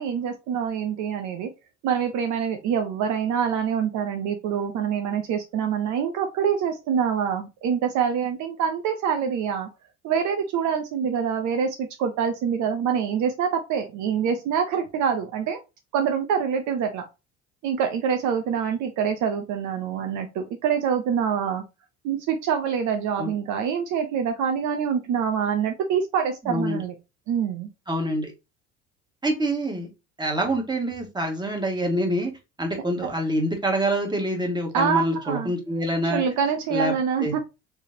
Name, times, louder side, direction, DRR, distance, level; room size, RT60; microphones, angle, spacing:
voice 1, 0.0-1.5 1.8-9.7 10.0-15.6 15.9-17.0 17.6-21.6 22.0-26.9 27.3-27.7 34.7-35.5 36.0-37.4, right 7 dB, 60° right, 6 dB, 0.8 m, -25 dB
voice 2, 26.4-26.8 27.9-28.3 29.2-29.9 30.2-32.3 32.6-36.2 36.7-36.9 37.2-37.3, right 1 dB, 15° right, 2 dB, 1.9 m, -26 dB
4.5 x 3.4 x 2.8 m, 0.26 s
hypercardioid pair, 70°, 34 cm